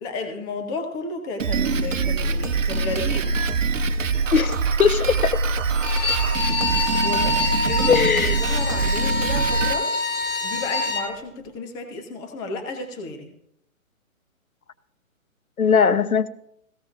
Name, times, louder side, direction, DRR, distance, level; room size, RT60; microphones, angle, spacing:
voice 1, 0.0-3.3 7.0-13.3, left 3 dB, 10° left, 5 dB, 0.7 m, -33 dB
Drum kit, 1.4-9.7, right 4 dB, 65° right, 0.9 m, -24 dB
voice 2, 4.3-5.4 7.9-8.4 15.6-16.3, left 6 dB, 85° left, 13 dB, 0.9 m, -19 dB
Bowed string instrument, 5.7-11.1, left 3 dB, 30° left, 2.1 m, -25 dB
19.5 x 16.0 x 2.5 m, 0.73 s
figure-of-eight pair, 145°, 41 cm